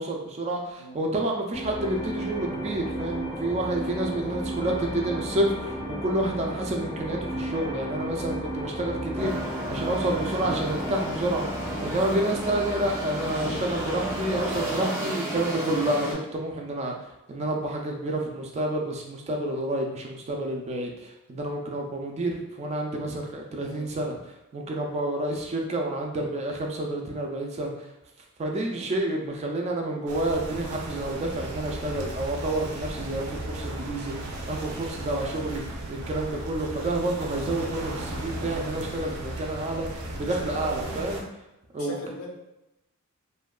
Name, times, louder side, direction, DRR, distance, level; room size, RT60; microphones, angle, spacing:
voice 1, 0.0-9.4 9.7-11.4 11.8-16.9 17.3-24.2 24.5-27.7 28.4-35.6 35.9-39.9 40.2-41.2 41.7-42.0, right 1 dB, 30° right, 1 dB, 0.3 m, -29 dB
sound 1, 1.5-14.9, equal, 25° left, 0.5 m, -34 dB
sound 2, 9.2-16.1, right 1 dB, 10° right, 0.7 m, -33 dB
voice 2, 23.6-23.9 28.7-28.9 40.4-41.1 41.8-42.3, left 1 dB, 75° left, -1 dB, 0.6 m, -40 dB
sound 3, 30.1-41.2, right 1 dB, 90° right, 0.5 m, -36 dB
2.7 x 2.2 x 2.2 m, 0.91 s
head